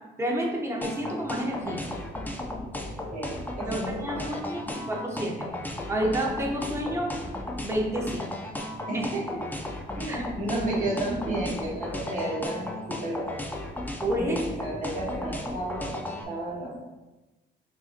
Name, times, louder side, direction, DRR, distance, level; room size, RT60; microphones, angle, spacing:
voice 1, 0.2-1.8 3.7-5.5 5.9-7.1 7.6-8.2 8.9-9.1 10.1-10.2 14.0-14.4, right 1 dB, 15° right, -1 dB, 0.8 m, -29 dB
sound 1, 0.8-16.2, left 1 dB, 10° left, 0.5 m, -35 dB
voice 2, 3.1-4.3 8.9-9.4 10.0-13.3 14.2-15.9 16.3-16.8, right 1 dB, 40° right, -5 dB, 1.5 m, -32 dB
5.5 x 2.7 x 2.5 m, 1.1 s
cardioid pair, 90°, 20 cm